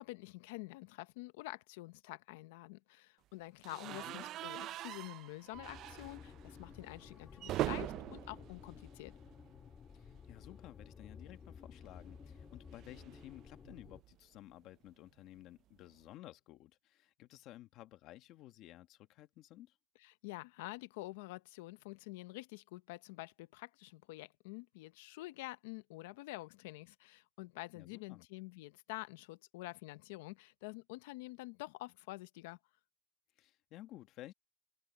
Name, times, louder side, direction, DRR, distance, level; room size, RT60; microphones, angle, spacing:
voice 1, 0.0-9.2 20.0-32.6, left 20 dB, 85° left, 0.8 m, -48 dB
sound 1, 3.6-9.7 10.0-10.2 10.4-10.5 11.8-14.1, right 14 dB, 40° right, 0.3 m, -43 dB
voice 2, 3.9-4.2 9.9-19.7 27.7-28.3 33.4-34.3, left 15 dB, 45° left, 1.6 m, -54 dB
sound 2, 5.5-14.0, left 6 dB, 25° left, 2.0 m, -54 dB
cardioid pair, 155°, 0 cm